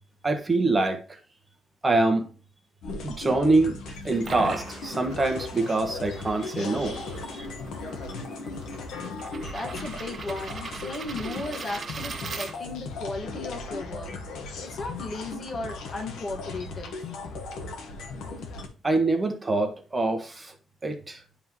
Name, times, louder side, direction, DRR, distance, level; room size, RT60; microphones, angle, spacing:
voice 1, 0.2-1.2 1.8-2.3 3.0-7.5 18.8-20.5 20.8-21.2, right 2 dB, 20° right, 1.1 m, -25 dB
sound 1, 2.8-18.7, left 3 dB, 80° left, 1.3 m, -37 dB
sound 2, 4.0-13.0, right 5 dB, 40° right, 0.6 m, -41 dB
voice 2, 9.5-17.1, left 2 dB, 40° left, 1.6 m, -36 dB
10.0 x 3.6 x 3.0 m
cardioid pair, 90°, 0 cm